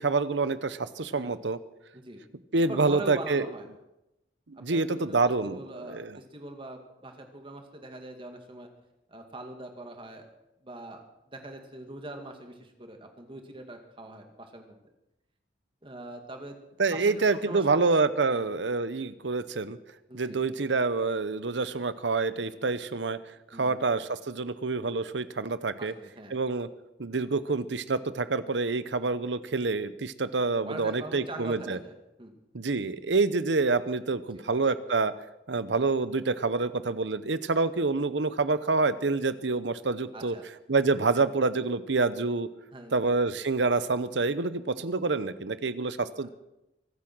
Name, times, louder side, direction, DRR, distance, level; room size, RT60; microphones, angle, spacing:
voice 1, 0.0-1.6 2.5-3.5 4.5-6.2 16.8-19.8 20.1-23.2 23.6-25.9 26.3-26.7 27.0-31.8 32.5-35.1 35.5-40.3 40.7-42.5 42.9-46.3, right 3 dB, 80° right, 14 dB, 0.9 m, -27 dB
voice 2, 2.7-3.7 4.7-5.2 5.4-8.7 9.1-10.3 10.6-14.8 15.8-16.6 16.9-17.8 18.2-18.4 20.1-20.4 23.5-23.8 25.8-26.4 30.6-32.4 34.3-34.5 40.1-40.5 42.7-42.9, right 1 dB, 30° right, 5 dB, 2.2 m, -42 dB
24.0 x 8.7 x 6.2 m, 0.90 s
head